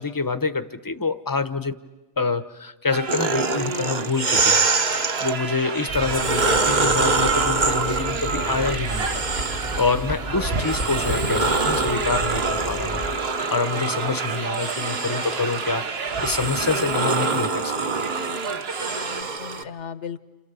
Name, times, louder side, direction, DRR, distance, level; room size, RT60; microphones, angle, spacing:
voice 1, 0.0-1.7 2.2-4.6 5.2-9.2 9.8-13.1 13.5-17.8, left 4 dB, 20° left, 11 dB, 0.8 m, -26 dB
sound 1, 2.9-19.2, right 5 dB, 60° right, 1.4 m, -31 dB
sound 2, 3.1-5.3 5.9-10.0 10.5-19.6, right 3 dB, 40° right, 1.1 m, -25 dB
sound 3, 5.9-13.2, right 1 dB, 85° right, 4.6 m, -33 dB
voice 2, 14.8-15.1 18.8-20.2, left 7 dB, 75° left, 12 dB, 1.4 m, -38 dB
29.5 x 28.5 x 6.9 m, 1.1 s
omnidirectional pair, 1.2 m